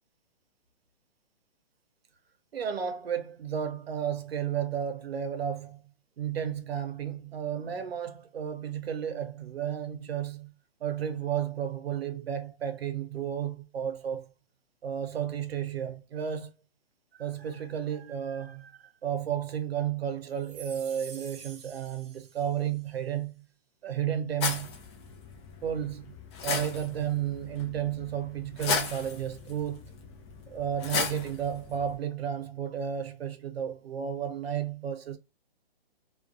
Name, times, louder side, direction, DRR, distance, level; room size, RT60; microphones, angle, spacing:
voice 1, 2.5-5.8 6.2-10.5 10.8-14.3 14.8-16.5 17.1-23.4 23.8-24.8 25.6-26.1 26.4-29.9 30.5-35.2, right 9 dB, 85° right, 0.6 m, -33 dB
sound 1, 20.4-22.9, right 6 dB, 40° right, 0.8 m, -48 dB
sound 2, 24.4-32.0, left 5 dB, 30° left, 0.5 m, -35 dB
2.3 x 2.3 x 2.4 m
hypercardioid pair, 145°, 30 cm